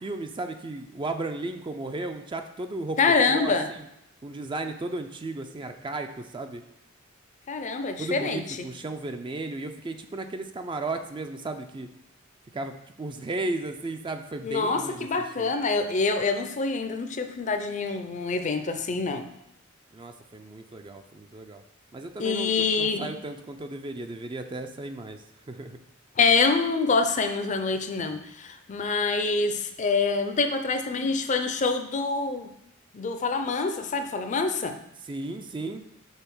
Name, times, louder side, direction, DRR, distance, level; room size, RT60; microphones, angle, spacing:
voice 1, 0.0-3.0 3.3-3.9 4.2-6.6 8.0-11.9 12.5-15.1 15.4-15.5 19.9-21.6 21.9-25.8 35.1-35.8, right 2 dB, 25° right, 7 dB, 0.4 m, -35 dB
voice 2, 3.0-3.7 7.5-8.7 14.4-19.3 22.2-23.1 26.2-32.5 32.9-34.8, left 4 dB, 35° left, 8 dB, 0.5 m, -26 dB
5.6 x 3.8 x 6.0 m, 0.81 s
head